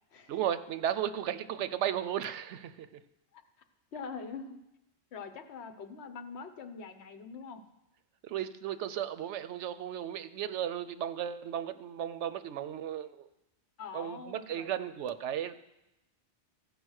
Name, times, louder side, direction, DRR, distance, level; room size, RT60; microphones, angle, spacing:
voice 1, 0.3-3.0 8.2-13.3 13.9-15.6, right 10 dB, 85° right, 12 dB, 0.9 m, -35 dB
voice 2, 3.9-4.6 5.1-7.6 13.8-14.7, left 5 dB, 70° left, 7 dB, 1.1 m, -43 dB
14.5 x 5.2 x 6.3 m, 0.91 s
omnidirectional pair, 1.2 m